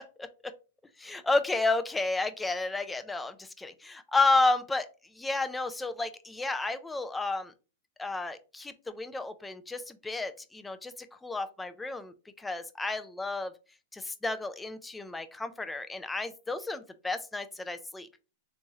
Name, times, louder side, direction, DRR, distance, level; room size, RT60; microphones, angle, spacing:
voice 1, 1.0-4.9 5.2-7.5 8.0-10.9 11.2-13.5 13.9-18.1, left 3 dB, 5° left, 10 dB, 0.4 m, -31 dB
3.4 x 3.0 x 2.9 m, 0.32 s
hypercardioid pair, 150°, 0 cm